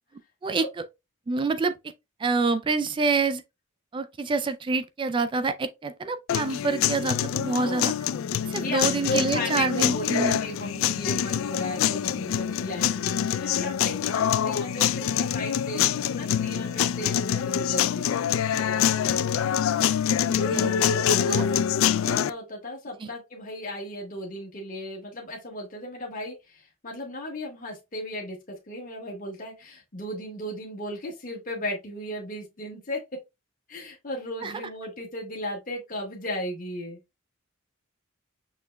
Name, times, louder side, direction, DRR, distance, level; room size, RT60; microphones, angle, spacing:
voice 1, 0.4-0.8 1.3-1.8 2.2-3.4 3.9-7.9 8.4-10.4 20.2-20.7 21.3-21.4 23.0-23.1 34.4-34.5, right 4 dB, 25° right, 0.3 m, -27 dB
sound 1, 6.3-22.3, left 9 dB, 70° left, 0.3 m, -25 dB
voice 2, 7.5-7.8 8.6-18.2 20.4-21.4 22.0-33.2 33.7-37.0, left 1 dB, 40° left, 1.4 m, -35 dB
6.4 x 3.1 x 2.2 m
head